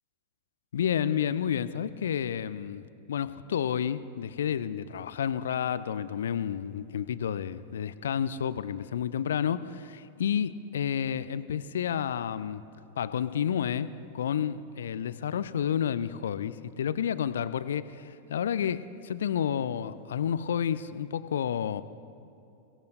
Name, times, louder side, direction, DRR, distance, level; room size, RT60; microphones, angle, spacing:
voice 1, 0.7-12.6 13.0-21.8, left 8 dB, 65° left, 15 dB, 0.5 m, -30 dB
28.5 x 17.5 x 2.7 m, 2.8 s
figure-of-eight pair, 90°, 0 cm